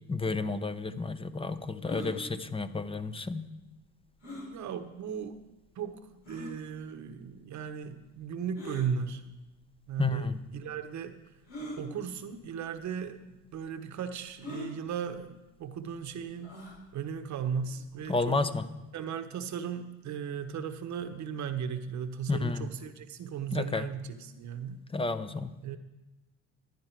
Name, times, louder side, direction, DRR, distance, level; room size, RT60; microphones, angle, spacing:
voice 1, 0.1-3.5 10.0-10.3 18.1-18.6 22.3-22.7 23.5-23.8 24.9-25.5, left 3 dB, 15° left, 11 dB, 0.8 m, -31 dB
sound 1, 1.8-2.1 4.2-4.5 5.3-5.4 6.2-6.5 8.5-8.9 9.9-10.0 11.5-11.8 12.7-12.9 13.1-13.2 14.4-14.7 16.4-16.8, left 1 dB, 90° left, 4.8 m, -41 dB
voice 2, 4.2-5.4 5.8-9.2 9.9-11.1 11.8-16.6 16.9-18.4 18.9-24.8 25.6-25.8, right 7 dB, 60° right, 9 dB, 1.1 m, -36 dB
12.0 x 10.5 x 4.6 m, 1.0 s
cardioid pair, 90°, 32 cm